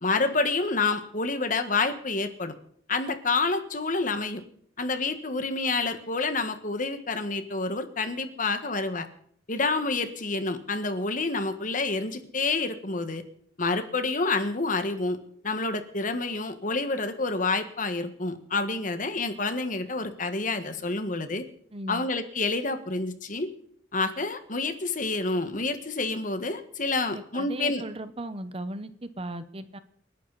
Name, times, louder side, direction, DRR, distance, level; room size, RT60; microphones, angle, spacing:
voice 1, 0.0-2.5 2.9-4.4 4.8-9.1 9.5-13.2 13.6-21.4 21.9-23.5 23.9-27.8, left 3 dB, 45° left, 9 dB, 1.6 m, -28 dB
voice 2, 21.7-22.0 27.1-29.8, right 1 dB, 30° right, 11 dB, 1.1 m, -37 dB
29.0 x 11.5 x 4.2 m, 0.63 s
head